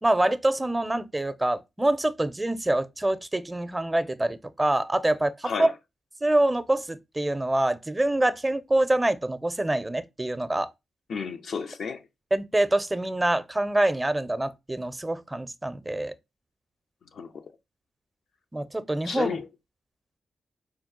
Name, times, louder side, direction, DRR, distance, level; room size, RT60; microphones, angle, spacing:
voice 1, 0.0-5.7 6.2-10.7 12.3-16.1 18.5-19.4, right 1 dB, 20° right, 0.5 m, -25 dB
voice 2, 11.1-12.0 17.1-17.5 19.0-19.5, left 6 dB, 70° left, 0.5 m, -32 dB
4.5 x 2.3 x 3.6 m
supercardioid pair, 45°, 0 cm